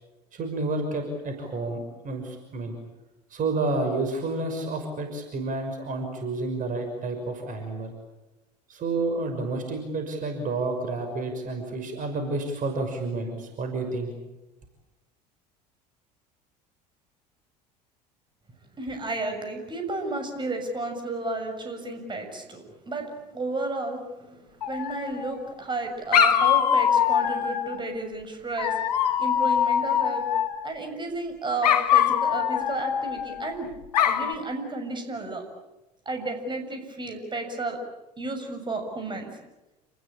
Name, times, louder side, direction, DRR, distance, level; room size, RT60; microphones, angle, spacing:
voice 1, 0.3-2.8 3.3-7.9 8.7-14.1, right 2 dB, 40° right, 5 dB, 6.1 m, -30 dB
voice 2, 18.8-28.8 29.2-30.3 30.6-33.7 34.0-35.4 36.0-37.8 38.2-39.3, right 2 dB, 20° right, 5 dB, 6.8 m, -32 dB
Dog, 24.6-25.4 26.1-27.8 28.6-30.7 31.6-33.5 33.9-34.3, left 9 dB, 75° left, 2.1 m, -23 dB
29.5 x 20.5 x 8.8 m, 1.0 s
figure-of-eight pair, 70°, 21 cm